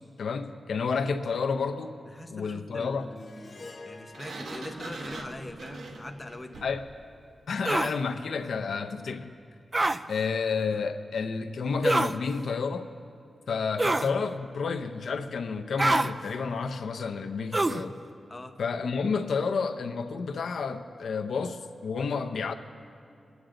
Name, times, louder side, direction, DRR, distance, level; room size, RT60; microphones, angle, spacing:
voice 1, 0.2-1.9 2.3-3.1 6.6-6.8 7.5-9.3 10.1-12.9 13.5-18.0 18.6-22.5, left 5 dB, 80° left, 8 dB, 0.6 m, -30 dB
voice 2, 2.1-6.6 18.3-18.6, left 1 dB, 20° left, 6 dB, 0.8 m, -42 dB
Harp, 3.1-7.6, left 3 dB, 55° left, 1.1 m, -51 dB
Sliding door, 4.1-6.9, right 3 dB, 75° right, 1.3 m, -41 dB
sound 1, 7.6-7.9 9.7-10.0 11.8-12.2 13.8-14.1 15.8-16.1 17.5-17.8, right 2 dB, 25° right, 0.3 m, -25 dB
22.0 x 9.5 x 3.9 m, 2.5 s
wide cardioid pair, 120°, 0 cm